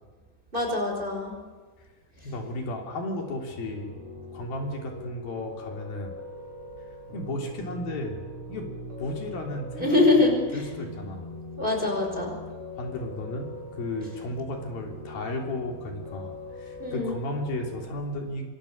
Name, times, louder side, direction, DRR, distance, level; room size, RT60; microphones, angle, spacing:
voice 1, 0.5-1.4 9.8-10.3 11.6-12.4 16.8-17.2, left 2 dB, 15° right, 1 dB, 5.5 m, -23 dB
voice 2, 2.2-6.2 7.1-8.7 9.0-10.3 10.5-11.3 12.8-18.4, left 2 dB, 70° left, 2 dB, 5.1 m, -34 dB
Piano, 3.5-17.9, equal, 55° right, 6.6 m, -42 dB
26.0 x 26.0 x 6.7 m, 1.4 s
omnidirectional pair, 4.3 m